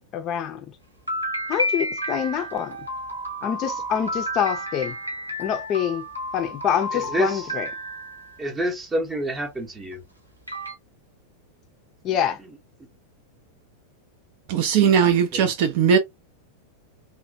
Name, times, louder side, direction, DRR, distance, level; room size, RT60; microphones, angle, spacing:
voice 1, 0.1-0.7 1.5-2.8 3.4-4.9 5.4-6.0 6.3-7.7 12.0-12.4, left 9 dB, 35° left, 0.5 m, -26 dB
sound 1, 1.1-8.5 9.9-10.0 10.5-10.7, equal, 90° right, 1.0 m, -31 dB
voice 2, 6.9-7.5 8.4-10.0 12.1-12.2 15.3-15.5, right 1 dB, 10° right, 0.7 m, -28 dB
voice 3, 14.5-16.0, right 7 dB, 45° right, 0.4 m, -19 dB
3.1 x 2.1 x 2.6 m
figure-of-eight pair, 90°, 0 cm